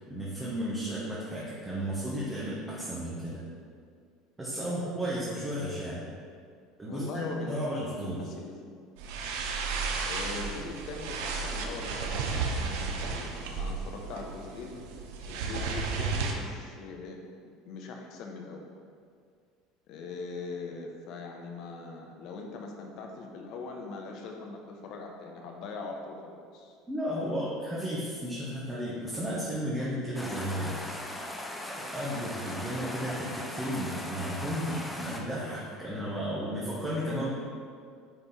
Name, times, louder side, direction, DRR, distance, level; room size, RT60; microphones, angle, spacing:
voice 1, 0.1-3.4 4.4-6.0 6.8-8.3 26.9-30.7 31.8-37.3, equal, 10° right, -7 dB, 1.2 m, -33 dB
voice 2, 6.9-8.7 10.0-14.8 15.3-17.2 17.6-18.7 19.9-26.8, left 3 dB, 55° left, 2 dB, 1.0 m, -41 dB
sound 1, 9.0-16.3, right 4 dB, 80° right, 0.8 m, -33 dB
sound 2, 30.1-35.2, left 1 dB, 5° left, 0.6 m, -39 dB
9.3 x 3.3 x 4.4 m, 2.1 s
cardioid pair, 135°, 0 cm